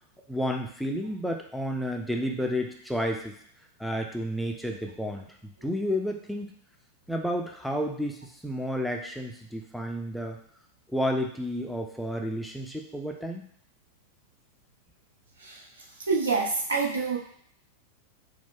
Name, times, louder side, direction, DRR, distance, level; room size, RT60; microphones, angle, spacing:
voice 1, 0.3-3.3 3.8-6.5 7.1-10.4 10.9-13.5, equal, ahead, 1 dB, 0.4 m, -31 dB
voice 2, 16.1-17.2, right 4 dB, 70° right, -2 dB, 0.9 m, -26 dB
4.7 x 2.2 x 3.7 m, 0.65 s
figure-of-eight pair, 90°, 0 cm